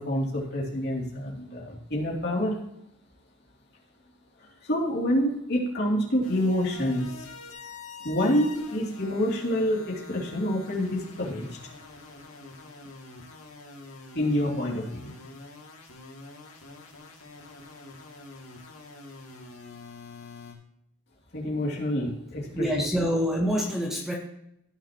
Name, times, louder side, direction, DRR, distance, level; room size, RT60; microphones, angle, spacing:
voice 1, 0.0-2.6 4.4-7.3 8.0-11.6 14.1-15.0 21.3-22.8, equal, 50° left, -3 dB, 3.0 m, -27 dB
sound 1, 6.2-20.5, left 3 dB, 85° left, 2.5 m, -46 dB
voice 2, 22.5-24.1, equal, ahead, -2 dB, 1.2 m, -26 dB
16.5 x 6.8 x 3.0 m, 0.77 s
head